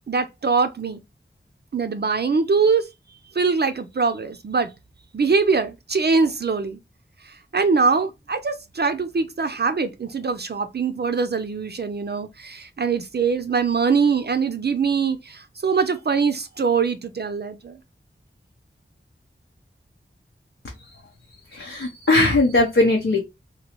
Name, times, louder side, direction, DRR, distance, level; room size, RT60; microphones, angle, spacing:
voice 1, 0.1-1.0 1.7-2.9 3.3-4.7 5.1-6.8 7.5-17.8, right 5 dB, 55° right, 0.4 m, -22 dB
voice 2, 21.5-23.2, left 2 dB, 75° left, 0.7 m, -19 dB
3.0 x 2.6 x 2.9 m
wide cardioid pair, 55°, 21 cm